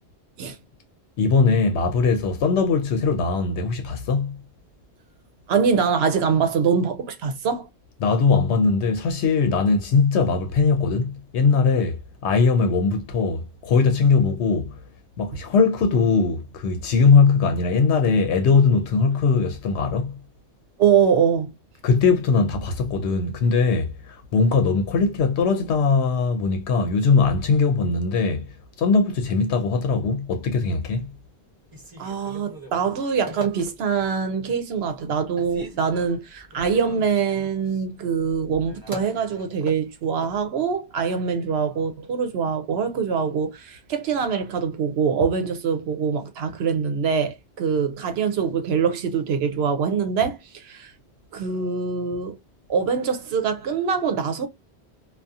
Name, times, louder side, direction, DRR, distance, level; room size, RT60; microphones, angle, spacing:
voice 1, 1.2-4.4 8.0-14.7 15.2-20.1 21.8-28.4 28.8-31.1, left 4 dB, 85° left, 0.9 m, -20 dB
voice 2, 5.5-7.7 20.8-21.5 32.0-50.9 51.3-52.4 52.7-54.5, right 6 dB, 75° right, 0.8 m, -24 dB
Telephone, 31.6-34.1 34.6-35.1 35.4-40.4, equal, 20° right, 0.8 m, -42 dB
2.6 x 2.3 x 2.3 m
omnidirectional pair, 1.1 m